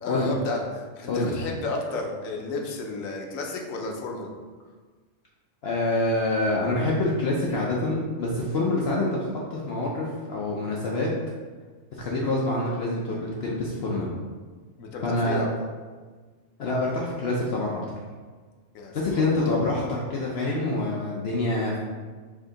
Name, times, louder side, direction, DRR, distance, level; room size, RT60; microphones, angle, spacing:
voice 1, 0.0-4.3 14.8-15.5 18.7-19.5, left 3 dB, 85° left, 1 dB, 1.1 m, -32 dB
voice 2, 1.1-1.4 5.6-9.2 9.5-11.1 11.9-14.1 15.0-15.5 16.6-17.8 18.9-21.8, left 2 dB, 60° left, -3 dB, 0.8 m, -26 dB
4.9 x 2.7 x 3.7 m, 1.4 s
omnidirectional pair, 1.4 m